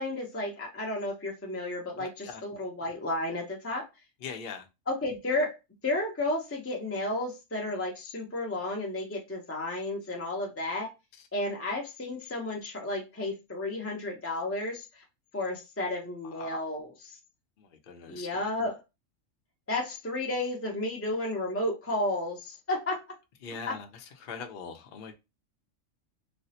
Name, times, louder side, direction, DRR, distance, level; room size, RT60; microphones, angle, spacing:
voice 1, 0.0-3.8 4.9-5.6 5.8-10.9 11.3-15.0 15.3-17.2 18.1-18.8 19.7-23.0 23.7-23.8, left 2 dB, 20° left, 0.3 m, -32 dB
voice 2, 2.0-2.4 4.2-4.6 16.4-16.6 17.9-18.3 23.4-23.9 24.2-25.1, left 6 dB, 55° left, 0.6 m, -40 dB
3.4 x 2.0 x 2.7 m
omnidirectional pair, 1.4 m